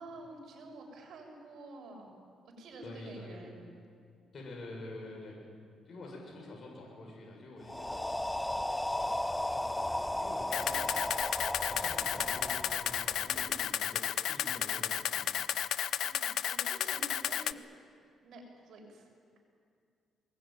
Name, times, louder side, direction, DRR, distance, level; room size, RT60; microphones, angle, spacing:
voice 1, 0.0-2.2 2.4-3.6 13.2-13.7 16.0-17.6 18.2-19.1, right 2 dB, 70° right, 1 dB, 7.0 m, -49 dB
voice 2, 2.8-3.4 4.3-5.4 5.8-8.1 8.5-8.7 9.0-11.3 11.5-14.0 14.3-15.3, left 2 dB, 45° left, -2 dB, 7.3 m, -47 dB
sound 1, 7.6-13.6, left 1 dB, 10° left, 0.5 m, -35 dB
Camera, 10.5-17.5, left 10 dB, 75° left, 0.6 m, -33 dB
23.0 x 21.0 x 9.3 m, 2.3 s
cardioid pair, 90°, 0 cm